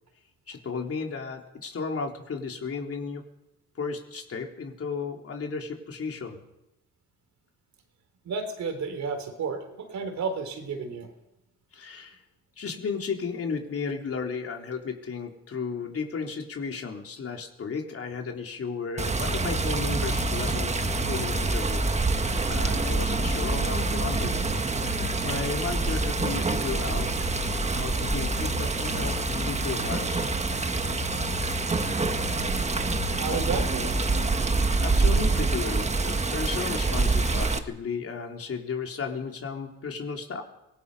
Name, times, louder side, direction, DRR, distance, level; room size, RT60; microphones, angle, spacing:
voice 1, 0.5-3.2 3.8-6.4 11.7-12.2 12.6-24.4 24.8-27.1 27.7-30.3 34.8-40.4, left 5 dB, 50° left, 2 dB, 3.6 m, -34 dB
voice 2, 8.2-11.1 33.2-34.0, right 4 dB, 65° right, 6 dB, 4.0 m, -32 dB
Water, 19.0-37.6, right 3 dB, 20° right, 1.5 m, -26 dB
sound 1, 19.3-35.3, left 9 dB, 65° left, 1.3 m, -37 dB
25.5 x 18.5 x 5.6 m, 0.92 s
cardioid pair, 90°, 30 cm